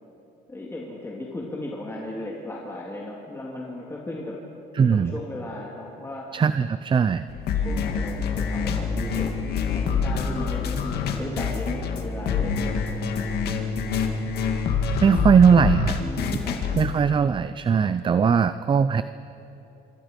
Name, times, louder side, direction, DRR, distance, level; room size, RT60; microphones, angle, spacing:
voice 1, 0.5-4.4 4.8-6.4 7.5-12.9 16.0-16.6, left 1 dB, 15° left, -3 dB, 2.7 m, -36 dB
voice 2, 4.7-5.1 6.3-7.2 15.0-16.0 16.8-19.0, right 6 dB, 30° right, 13 dB, 0.6 m, -19 dB
sound 1, 7.3-17.0, left 5 dB, 70° left, 2.2 m, -26 dB
27.0 x 24.5 x 5.3 m, 2.9 s
cardioid pair, 110°, 17 cm